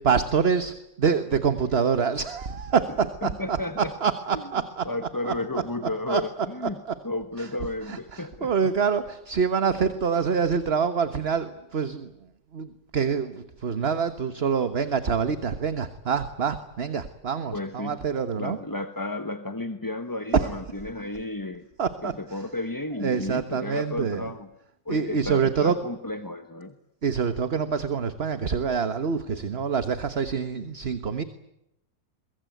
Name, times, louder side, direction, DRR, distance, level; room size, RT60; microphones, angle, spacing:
voice 1, 0.0-4.9 5.2-5.6 6.1-6.2 6.6-6.9 7.4-7.5 7.8-12.1 12.5-18.6 20.3-20.5 21.0-21.1 21.8-22.5 23.0-24.2 24.9-25.8 27.0-31.2, right 6 dB, 35° right, 11 dB, 1.4 m, -26 dB
voice 2, 3.2-3.9 4.3-4.4 4.8-6.8 7.0-8.7 17.5-18.0 18.4-21.7 22.0-24.5 24.8-26.8, left 2 dB, 15° left, 9 dB, 1.0 m, -33 dB
24.5 x 22.5 x 9.2 m, 0.84 s
omnidirectional pair, 1.9 m